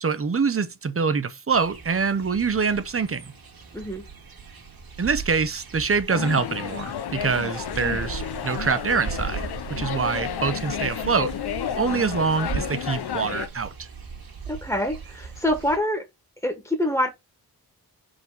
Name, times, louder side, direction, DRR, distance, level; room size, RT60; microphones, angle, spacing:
voice 1, 0.0-3.3 5.0-9.4 9.7-11.3 11.7-13.9, right 5 dB, 35° right, 0.9 m, -25 dB
sound 1, 1.5-15.8, right 6 dB, 65° right, 2.3 m, -38 dB
voice 2, 3.7-4.0 14.5-16.0 16.4-17.1, left 1 dB, 10° left, 1.7 m, -25 dB
sound 2, 6.1-13.5, left 9 dB, 85° left, 0.7 m, -31 dB
5.4 x 5.0 x 4.0 m
wide cardioid pair, 90°, 38 cm